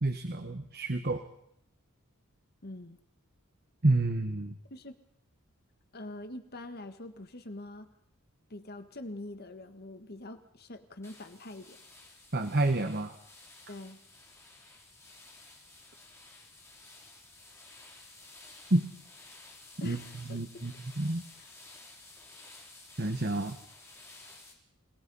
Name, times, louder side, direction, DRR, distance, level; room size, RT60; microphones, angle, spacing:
voice 1, 0.0-1.2 3.8-4.5 12.3-13.1 18.7-18.9 19.8-20.0 20.3-21.2 23.0-23.6, right 2 dB, 45° right, 8 dB, 1.3 m, -29 dB
voice 2, 2.6-3.0 4.7-5.0 5.9-7.9 8.5-11.8 13.7-14.0 19.8-20.4 21.4-21.5, left 2 dB, 45° left, 9 dB, 1.6 m, -44 dB
sound 1, 11.0-24.5, left 2 dB, 10° left, 4.5 m, -53 dB
29.5 x 19.0 x 5.5 m, 0.74 s
head